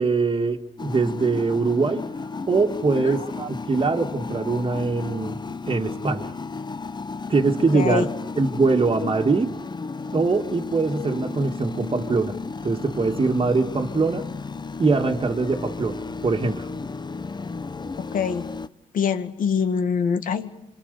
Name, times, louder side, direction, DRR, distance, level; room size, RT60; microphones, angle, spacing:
voice 1, 0.0-2.1 2.5-5.4 5.7-6.3 7.3-8.1 8.4-9.6 10.1-12.4 12.6-14.3 14.8-16.7, right 3 dB, 35° right, 1.9 m, -23 dB
sound 1, 0.8-18.7, left 4 dB, 30° left, 0.8 m, -34 dB
voice 2, 3.0-3.3 7.7-8.1 18.0-18.5 18.9-20.5, left 6 dB, 75° left, 2.0 m, -24 dB
26.5 x 23.0 x 6.8 m
supercardioid pair, 60°, 14 cm